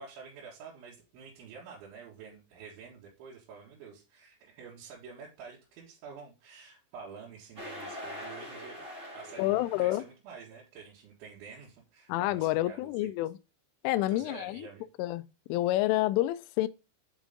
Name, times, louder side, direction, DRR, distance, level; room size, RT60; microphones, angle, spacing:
voice 1, 0.0-8.9 9.1-13.1 13.9-14.9, right 5 dB, 75° right, 4.1 m, -48 dB
sound 1, 7.6-10.1, equal, 50° right, 0.9 m, -43 dB
voice 2, 9.4-10.0 12.1-13.4 13.8-14.7 15.0-15.2 15.5-16.7, left 16 dB, 85° left, 3.1 m, -28 dB
8.2 x 5.1 x 3.7 m
omnidirectional pair, 5.6 m